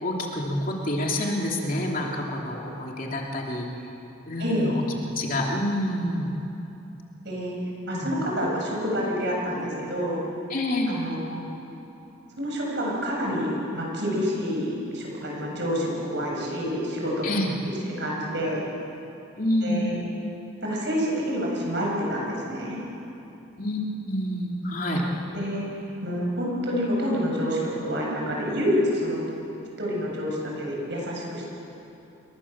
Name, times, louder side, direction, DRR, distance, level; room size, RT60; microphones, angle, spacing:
voice 1, 0.0-3.7 4.3-4.7 5.2-6.3 7.9-8.1 10.5-10.9 17.2-17.5 19.4-19.9 23.6-23.8 24.0-25.0, left 1 dB, 45° left, -1 dB, 3.0 m, -27 dB
voice 2, 4.4-4.7 7.2-7.6 7.9-10.2 10.9-11.5 12.4-17.3 17.6-18.6 19.6-20.0 20.6-22.8 25.3-25.7 26.0-29.2 29.8-31.5, equal, 55° right, -3 dB, 7.7 m, -28 dB
28.5 x 23.0 x 7.4 m, 2.9 s
head